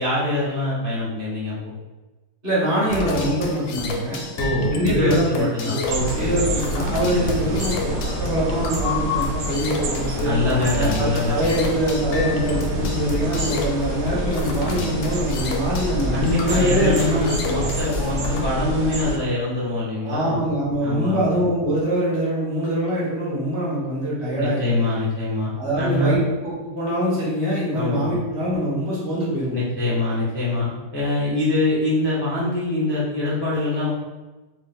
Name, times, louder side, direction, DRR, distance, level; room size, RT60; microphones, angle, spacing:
voice 1, 0.0-1.6 4.4-6.4 7.1-7.7 10.2-11.5 16.1-20.4 20.8-21.4 24.4-26.2 27.7-28.2 29.5-33.9, left 2 dB, 20° left, -9 dB, 0.3 m, -24 dB
voice 2, 2.4-4.2 4.7-5.8 6.2-10.3 10.7-17.2 20.0-24.8 25.6-29.6, equal, 40° right, -7 dB, 1.0 m, -24 dB
sound 1, 2.9-18.4, left 2 dB, 80° left, 1.2 m, -29 dB
sound 2, 5.9-19.2, equal, 65° right, 1.1 m, -28 dB
3.3 x 2.3 x 3.6 m, 1.1 s
omnidirectional pair, 1.9 m